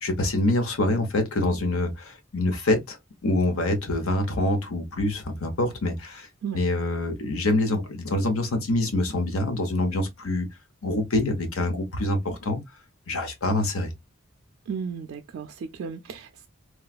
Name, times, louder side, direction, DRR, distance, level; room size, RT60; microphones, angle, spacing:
voice 1, 0.0-3.0 3.2-6.3 6.5-10.5 10.8-12.6 13.1-13.9, left 1 dB, 85° left, 0.9 m, -25 dB
voice 2, 14.7-16.5, right 6 dB, 75° right, 0.4 m, -34 dB
3.1 x 2.3 x 2.3 m
head